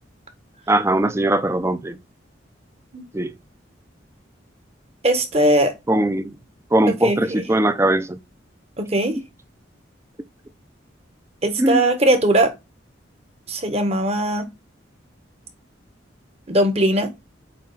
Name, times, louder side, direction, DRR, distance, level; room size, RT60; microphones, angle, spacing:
voice 1, 0.7-2.0 3.1-3.3 5.9-6.3 6.7-8.2 11.6-11.8, right 1 dB, 15° right, 0.5 m, -20 dB
voice 2, 5.0-5.8 6.9-7.4 8.8-9.2 11.4-12.5 13.5-14.5 16.5-17.1, right 1 dB, 35° right, 1.1 m, -19 dB
8.5 x 3.1 x 3.9 m
head